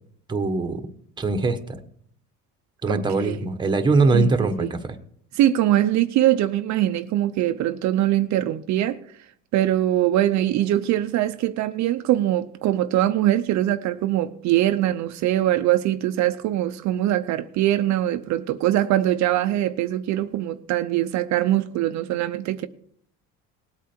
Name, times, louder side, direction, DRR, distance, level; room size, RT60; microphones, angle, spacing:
voice 1, 0.3-0.8 1.2-1.8 2.8-5.0, right 3 dB, 15° right, 1.1 m, -22 dB
voice 2, 4.1-4.7 5.3-9.0 9.5-22.7, right 13 dB, 60° right, 0.7 m, -22 dB
19.0 x 8.4 x 4.4 m
cardioid pair, 130°, 33 cm